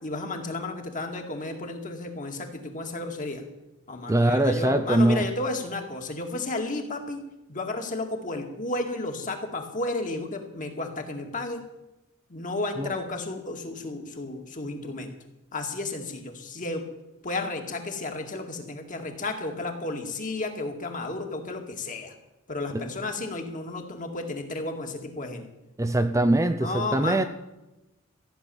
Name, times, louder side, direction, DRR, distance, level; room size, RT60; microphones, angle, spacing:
voice 1, 0.0-3.4 3.9-7.2 7.5-11.6 12.3-15.1 15.5-16.8 17.2-22.1 22.5-25.5 26.6-27.3, left 2 dB, 40° left, 4 dB, 2.3 m, -32 dB
voice 2, 4.1-5.3 12.8-12.9 22.7-22.9 25.8-27.2, right 1 dB, 15° right, 8 dB, 0.6 m, -22 dB
15.0 x 9.7 x 7.1 m, 0.96 s
head